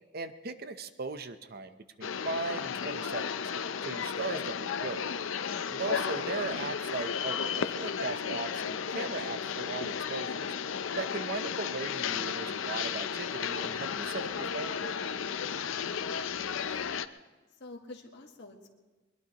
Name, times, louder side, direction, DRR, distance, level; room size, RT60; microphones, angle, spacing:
voice 1, 0.1-3.2 3.8-5.1 5.7-10.5 11.0-15.1, right 3 dB, 50° right, 10 dB, 0.7 m, -38 dB
sound 1, 2.0-17.1, left 7 dB, 75° left, 0.6 m, -34 dB
voice 2, 16.1-16.6 17.6-18.7, left 2 dB, 55° left, 1 dB, 1.6 m, -48 dB
21.5 x 21.0 x 3.0 m, 1.2 s
head